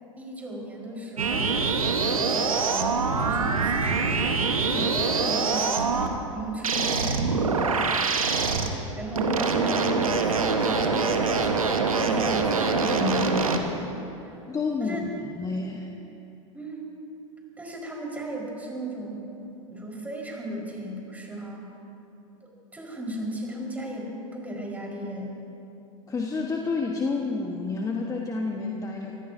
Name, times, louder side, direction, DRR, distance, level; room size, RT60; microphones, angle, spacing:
voice 1, 0.2-1.5 2.2-4.3 4.7-8.1 8.6-14.4 14.8-15.1 16.5-16.9 17.6-19.3 19.7-21.7 22.7-25.4, equal, 10° right, -2 dB, 4.6 m, -35 dB
sound 1, 1.2-6.1 6.6-8.7 9.2-13.6, right 4 dB, 90° right, 1.3 m, -24 dB
voice 2, 14.5-15.0 15.3-15.9 26.1-29.2, left 4 dB, 20° left, 1 dB, 1.3 m, -29 dB
26.0 x 17.0 x 2.7 m, 2.9 s
hypercardioid pair, 95°, 17 cm